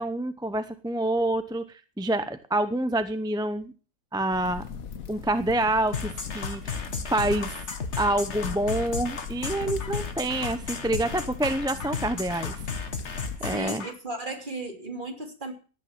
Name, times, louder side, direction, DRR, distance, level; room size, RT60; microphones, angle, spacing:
voice 1, 0.0-3.7 4.1-4.6 5.1-6.8 7.1-7.5 8.0-12.6 13.4-13.9, right 1 dB, 5° right, 10 dB, 0.5 m, -27 dB
sound 1, 4.3-13.4, left 7 dB, 75° left, 1.6 m, -40 dB
sound 2, 5.9-13.9, left 5 dB, 50° left, 1.8 m, -34 dB
voice 2, 13.4-15.5, right 2 dB, 35° right, 2 dB, 3.4 m, -35 dB
16.5 x 9.1 x 6.0 m, 0.38 s
omnidirectional pair, 1.5 m